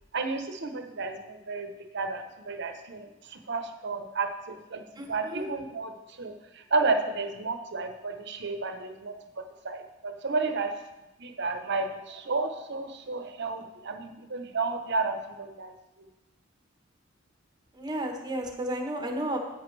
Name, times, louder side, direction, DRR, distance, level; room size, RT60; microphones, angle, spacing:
voice 1, 0.1-10.7 11.2-15.7 16.0-16.1, right 3 dB, 60° right, 6 dB, 0.9 m, -32 dB
voice 2, 5.0-5.5 17.7-19.4, right 1 dB, 20° right, 3 dB, 1.0 m, -32 dB
10.5 x 8.8 x 3.3 m, 0.97 s
head